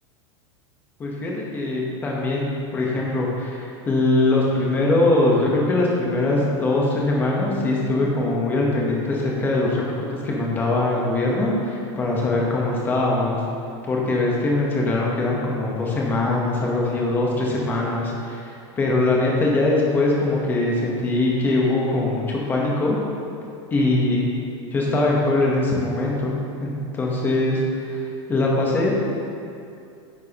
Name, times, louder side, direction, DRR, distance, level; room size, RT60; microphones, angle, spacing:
voice 1, 1.0-2.5 2.7-13.4 13.9-23.0 23.7-24.3 24.7-27.6 27.9-29.0, left 2 dB, 10° left, -3 dB, 1.0 m, -22 dB
10.5 x 7.6 x 3.0 m, 2.5 s
supercardioid pair, 180°, 16 cm